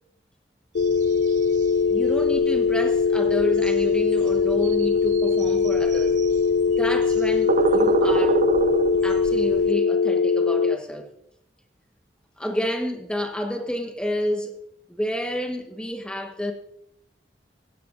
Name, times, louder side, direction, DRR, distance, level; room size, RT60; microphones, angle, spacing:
sound 1, 0.7-10.8, left 5 dB, 75° left, 0.4 m, -21 dB
sound 2, 0.8-9.7, right 4 dB, 45° right, 0.4 m, -29 dB
voice 1, 1.9-6.2 6.8-8.4 9.0-11.1 12.4-14.6 14.9-16.5, equal, 5° left, 1.1 m, -29 dB
16.0 x 10.0 x 2.5 m
head